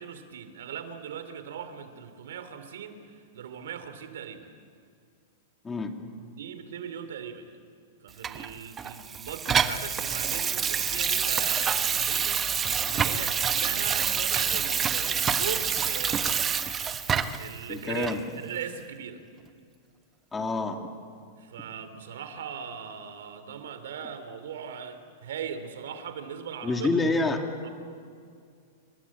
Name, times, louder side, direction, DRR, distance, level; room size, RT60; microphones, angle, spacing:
voice 1, 0.0-4.5 6.3-7.6 8.0-12.5 12.8-16.6 17.4-19.2 21.4-27.0 27.6-27.7, right 7 dB, 80° right, 10 dB, 3.1 m, -39 dB
Water tap faucet / Sink (filling or washing), 8.2-17.5 18.0-18.2, right 7 dB, 20° right, 1.1 m, -27 dB
voice 2, 17.7-18.2 20.3-20.8 26.6-27.5, left 3 dB, 10° left, 4 dB, 2.7 m, -27 dB
29.0 x 24.0 x 8.6 m, 2.2 s
supercardioid pair, 145°, 0 cm